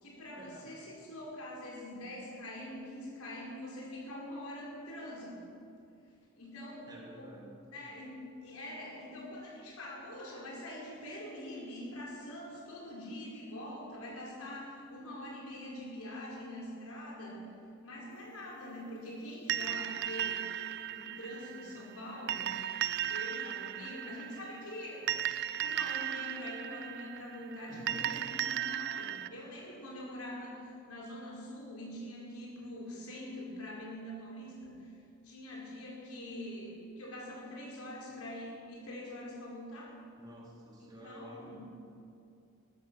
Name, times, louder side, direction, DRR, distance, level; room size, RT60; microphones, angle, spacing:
voice 1, 0.0-5.3 6.3-7.3 7.7-17.4 17.8-22.5 23.1-25.1 25.5-34.9 35.2-39.9 40.8-41.6, left 1 dB, 85° left, -3 dB, 4.5 m, -44 dB
voice 2, 6.9-7.6 27.7-28.2 40.2-41.6, right 1 dB, 20° right, -2 dB, 2.4 m, -50 dB
sound 1, 19.5-29.3, right 11 dB, 50° right, 0.3 m, -36 dB
13.5 x 13.5 x 6.2 m, 2.5 s
head